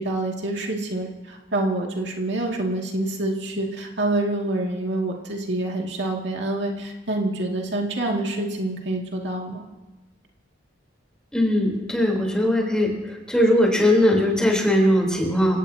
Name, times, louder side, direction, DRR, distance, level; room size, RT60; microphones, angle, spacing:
voice 1, 0.0-9.6, right 2 dB, 70° right, 0 dB, 2.3 m, -27 dB
voice 2, 11.3-12.9 13.3-15.6, left 1 dB, 5° left, -1 dB, 3.7 m, -19 dB
28.5 x 17.5 x 2.9 m, 1.1 s
head